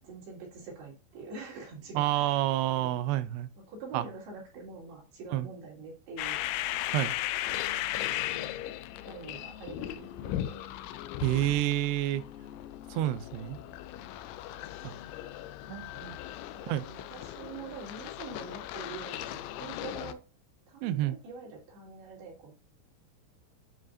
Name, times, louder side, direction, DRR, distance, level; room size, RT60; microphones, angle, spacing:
voice 1, 0.0-3.0 3.6-6.8 7.5-7.6 8.3-8.7 9.0-10.6 13.5-13.9 14.5-14.7 15.1-15.2 15.6-16.2 16.5-20.2 20.7-22.5, right 4 dB, 65° right, 4.4 m, -46 dB
voice 2, 2.0-3.5 3.9-4.0 5.3-5.5 6.9-7.1 11.2-12.2 12.9-13.6 14.8-14.9 15.7-16.2 16.7-16.9 20.8-21.2, right 14 dB, 85° right, 2.5 m, -29 dB
sound 1, 6.2-20.1, left 14 dB, 90° left, 3.0 m, -37 dB
9.8 x 5.1 x 2.6 m
omnidirectional pair, 5.3 m